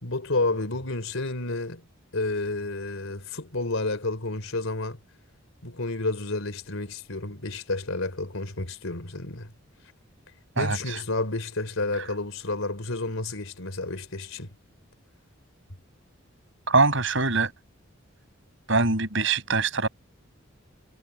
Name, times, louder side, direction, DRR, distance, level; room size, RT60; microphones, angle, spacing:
voice 1, 0.0-1.8 2.1-5.0 5.6-9.5 10.6-14.5, left 2 dB, 75° left, 3.4 m, -30 dB
voice 2, 10.6-11.0 16.7-17.5 18.7-19.9, right 3 dB, 65° right, 7.1 m, -23 dB
head